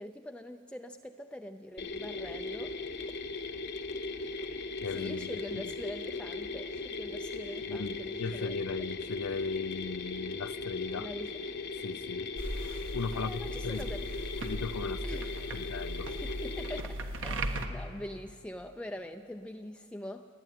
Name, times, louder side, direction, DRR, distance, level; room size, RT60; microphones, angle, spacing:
voice 1, 0.0-2.8 4.4-4.5 4.9-8.6 11.0-11.3 13.1-14.1 15.0-15.6 16.1-20.3, left 1 dB, 5° left, 5 dB, 0.5 m, -43 dB
Mechanisms, 1.8-16.8, left 3 dB, 50° left, 1.0 m, -38 dB
voice 2, 4.8-5.4 7.7-11.1 11.7-12.3 12.9-13.9 14.4-15.2 15.5-16.1, left 4 dB, 75° left, 16 dB, 0.6 m, -37 dB
walking on a creaky floor, 12.4-17.7, right 1 dB, 60° right, 1.4 m, -38 dB
29.5 x 9.9 x 9.2 m, 2.3 s
head